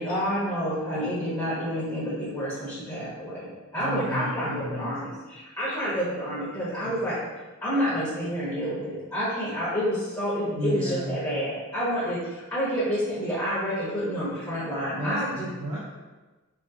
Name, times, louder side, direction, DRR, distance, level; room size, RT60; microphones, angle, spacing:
voice 1, 0.0-7.1 7.6-15.5, equal, 15° left, -10 dB, 1.0 m, -29 dB
voice 2, 3.8-4.9 6.8-6.9 10.5-11.2 15.0-15.8, right 1 dB, 90° right, -7 dB, 0.8 m, -32 dB
4.4 x 3.0 x 2.7 m, 1.2 s
head